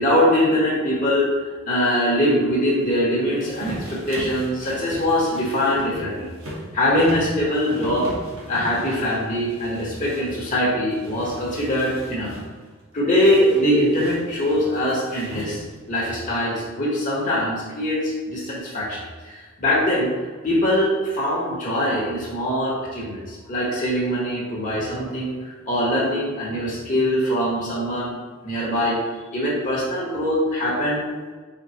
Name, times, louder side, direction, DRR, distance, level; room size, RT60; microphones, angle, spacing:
voice 1, 0.0-1.3 1.7-6.3 6.7-8.1 8.5-12.4 12.9-15.6 15.9-20.1 20.4-29.0 29.3-31.1, equal, 40° left, -5 dB, 0.9 m, -22 dB
sound 1, 3.4-10.5 10.9-12.5 13.3-15.8, right 1 dB, 85° right, 1.1 m, -38 dB
4.3 x 3.6 x 2.8 m, 1.4 s
head